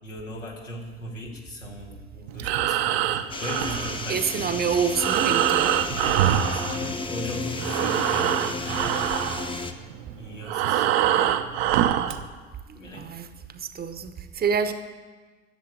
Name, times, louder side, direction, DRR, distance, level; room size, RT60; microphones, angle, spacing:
voice 1, 0.0-4.5 5.9-9.2 10.2-12.1 12.7-13.0, left 1 dB, 85° left, 2.0 m, -38 dB
Breathing, 2.3-7.3 7.5-12.2, right 11 dB, 55° right, 0.7 m, -25 dB
sound 1, 3.3-9.7, left 4 dB, 15° left, 0.9 m, -33 dB
voice 2, 4.1-5.8 12.8-14.7, right 6 dB, 25° right, 0.9 m, -27 dB
10.5 x 7.3 x 8.5 m
figure-of-eight pair, 65°, 36 cm